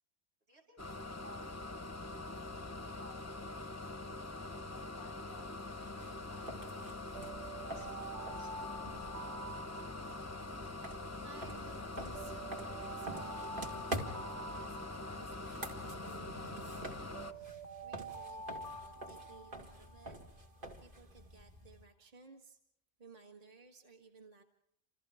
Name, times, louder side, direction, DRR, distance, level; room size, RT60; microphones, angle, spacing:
voice 1, 0.5-1.9 2.8-3.7 3.9-5.5 5.8-6.6 7.5-9.0, left 1 dB, 75° right, -1 dB, 7.2 m, -60 dB
sound 1, 0.8-17.3, left 2 dB, 15° left, 0.9 m, -44 dB
sound 2, 5.8-21.8, right 1 dB, 50° right, 2.5 m, -48 dB
Alarm, 7.0-11.1 11.6-16.1 16.6-20.4, right 2 dB, 15° right, 1.6 m, -48 dB
voice 2, 11.2-20.2 20.8-22.6 23.0-24.4, right 3 dB, 35° right, 3 dB, 1.7 m, -59 dB
29.5 x 27.5 x 3.5 m, 0.80 s
omnidirectional pair, 1.1 m